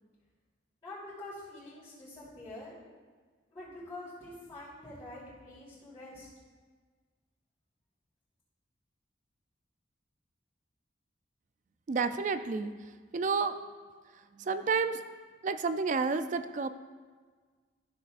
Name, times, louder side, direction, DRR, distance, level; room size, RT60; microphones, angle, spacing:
voice 1, 0.8-2.7 3.5-6.3, left 2 dB, 20° left, -13 dB, 2.8 m, -46 dB
voice 2, 11.9-12.7 13.1-13.5 14.4-15.0 15.4-16.7, right 5 dB, 40° right, 11 dB, 0.4 m, -30 dB
13.0 x 7.2 x 2.5 m, 1.5 s
head